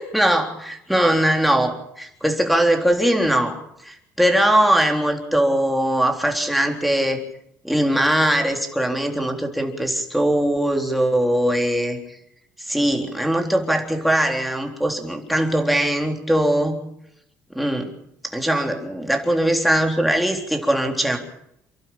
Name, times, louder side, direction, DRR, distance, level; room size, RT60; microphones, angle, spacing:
voice 1, 0.0-7.2 7.6-12.0 12.6-16.8 17.5-17.9 18.2-21.2, right 1 dB, ahead, 2 dB, 3.6 m, -21 dB
28.5 x 12.0 x 8.9 m, 0.78 s
cardioid pair, 115°, 6 cm